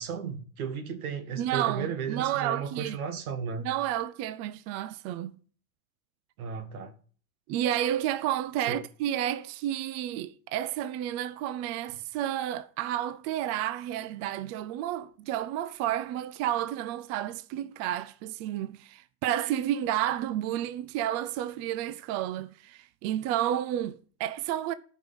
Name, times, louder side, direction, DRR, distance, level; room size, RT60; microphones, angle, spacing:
voice 1, 0.0-3.7 6.4-6.9 8.7-8.8, right 6 dB, 85° right, 1.8 m, -34 dB
voice 2, 1.4-3.0 3.6-5.3 7.5-24.7, right 12 dB, 40° right, 0.5 m, -31 dB
11.5 x 5.4 x 5.5 m
supercardioid pair, 125°, 42 cm